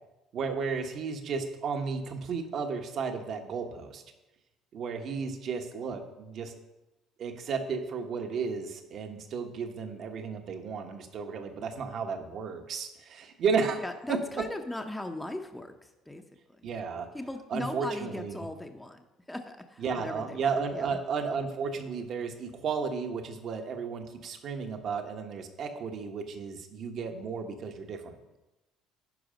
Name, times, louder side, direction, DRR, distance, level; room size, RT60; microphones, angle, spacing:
voice 1, 0.3-4.0 4.7-6.5 7.2-13.8 14.1-14.4 16.6-17.1 17.5-18.4 19.8-28.1, right 5 dB, 55° right, 5 dB, 1.2 m, -33 dB
voice 2, 13.8-16.2 16.6-16.7 17.1-21.0, left 1 dB, 10° left, 5 dB, 0.7 m, -39 dB
11.0 x 4.8 x 5.1 m, 1.0 s
supercardioid pair, 85°, 0 cm